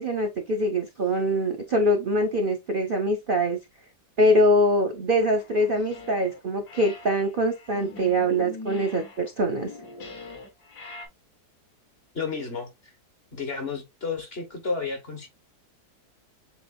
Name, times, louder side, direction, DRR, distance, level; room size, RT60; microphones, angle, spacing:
voice 1, 0.0-3.6 4.2-9.7, equal, 50° right, 0.6 m, -23 dB
sound 1, 5.2-6.4 6.7-11.1, left 3 dB, 70° left, 1.6 m, -42 dB
voice 2, 12.1-12.9 13.3-15.3, left 4 dB, 40° left, 1.2 m, -32 dB
7.3 x 2.6 x 2.4 m
omnidirectional pair, 1.8 m